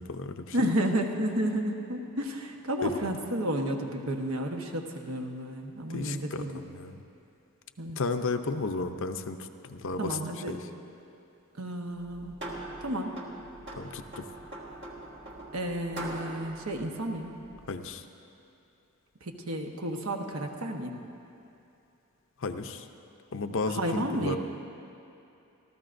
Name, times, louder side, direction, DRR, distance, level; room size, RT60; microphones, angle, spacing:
voice 1, 0.0-0.6 2.8-3.0 5.9-7.0 8.0-10.2 10.5-10.6 13.8-14.3 17.7-18.1 22.4-22.9 23.3-24.4, left 3 dB, 60° left, 8 dB, 0.6 m, -33 dB
voice 2, 0.5-6.6 7.8-8.0 10.0-10.6 11.6-12.4 12.8-13.2 15.5-17.3 19.2-20.9 23.7-24.4, right 1 dB, 70° right, 3 dB, 1.1 m, -31 dB
sound 1, 11.9-17.8, right 2 dB, 55° right, 1.7 m, -42 dB
27.0 x 13.5 x 2.6 m, 2.8 s
head